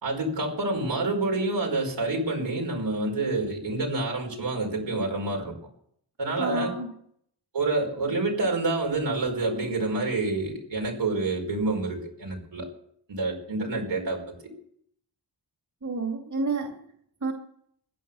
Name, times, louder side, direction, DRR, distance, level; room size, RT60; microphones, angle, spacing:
voice 1, 0.0-5.5 6.2-6.7 7.5-12.7 13.1-14.5, right 2 dB, 90° right, 0 dB, 5.1 m, -28 dB
voice 2, 6.4-6.9 15.8-16.8 17.2-17.3, right 3 dB, 45° right, 2 dB, 2.4 m, -29 dB
15.5 x 11.0 x 7.0 m, 0.66 s
wide cardioid pair, 130°, 42 cm